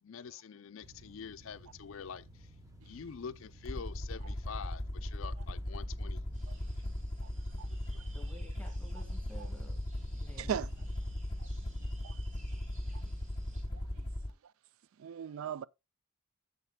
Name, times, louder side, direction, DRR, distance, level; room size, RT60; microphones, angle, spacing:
voice 1, 0.0-2.5 2.8-6.2, left 6 dB, 65° left, 0.4 m, -46 dB
sound 1, 0.8-14.1, equal, 15° right, 0.9 m, -55 dB
Aircraft, 3.7-14.3, left 1 dB, 25° left, 1.0 m, -38 dB
sound 2, 6.3-13.6, right 3 dB, 35° right, 3.9 m, -62 dB
voice 2, 8.1-9.8 10.1-10.9, equal, 5° left, 1.8 m, -53 dB
voice 3, 10.4-10.7 12.0-12.1 15.0-15.6, right 8 dB, 70° right, 0.3 m, -36 dB
11.0 x 7.0 x 2.2 m
head